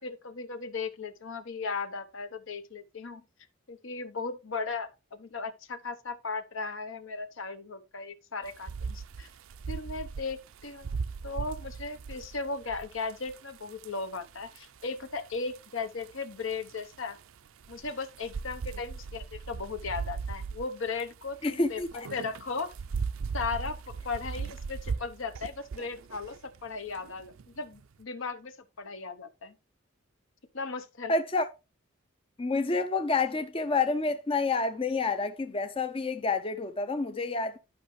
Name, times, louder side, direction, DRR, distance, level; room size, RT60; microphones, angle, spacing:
voice 1, 0.0-3.2 3.7-9.3 9.7-10.9 11.2-17.2 17.7-22.7 23.3-29.5 30.5-31.1, left 4 dB, 70° left, 0.9 m, -37 dB
sound 1, 8.4-27.8, right 5 dB, 80° right, 0.5 m, -38 dB
voice 2, 21.4-22.1 31.1-31.5 32.4-37.6, left 3 dB, 25° left, 0.5 m, -28 dB
11.5 x 5.6 x 3.1 m
head